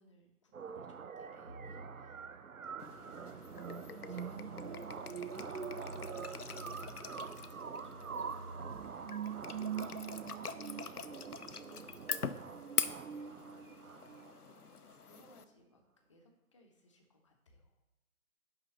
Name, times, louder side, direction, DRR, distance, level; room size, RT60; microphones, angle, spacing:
voice 1, 0.0-10.4 10.8-17.8, equal, 20° left, 2 dB, 0.9 m, -66 dB
sound 1, 0.5-14.5, right 7 dB, 65° right, 0.6 m, -44 dB
sound 2, 1.5-8.8, right 2 dB, 20° right, 1.0 m, -52 dB
sound 3, 2.8-15.4, left 6 dB, 85° left, 0.7 m, -44 dB
11.0 x 3.8 x 7.0 m, 1.0 s
figure-of-eight pair, 150°, 44 cm